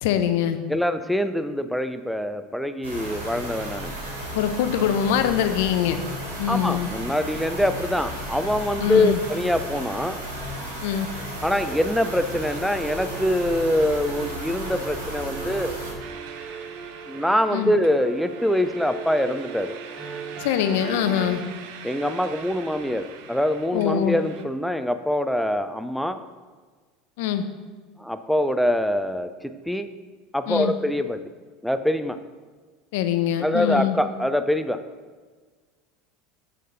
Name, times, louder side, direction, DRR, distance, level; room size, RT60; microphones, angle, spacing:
voice 1, 0.0-0.6 4.3-6.0 6.4-6.9 8.8-9.2 10.8-11.1 17.5-17.7 20.4-21.4 23.7-24.2 27.2-27.4 30.5-30.7 32.9-34.0, left 9 dB, 70° left, 9 dB, 0.7 m, -23 dB
voice 2, 0.7-3.9 6.5-10.2 11.4-15.8 17.1-19.8 21.8-26.2 28.0-29.9 30.3-31.2 31.6-32.2 33.4-34.8, left 1 dB, ahead, 9 dB, 0.6 m, -24 dB
sound 1, 2.8-15.9, equal, 90° right, 2.0 m, -34 dB
sound 2, 11.6-21.3, right 5 dB, 45° right, 2.8 m, -38 dB
sound 3, 16.0-24.5, right 7 dB, 70° right, 0.7 m, -43 dB
6.7 x 6.4 x 5.7 m, 1.4 s
hypercardioid pair, 80°, 0 cm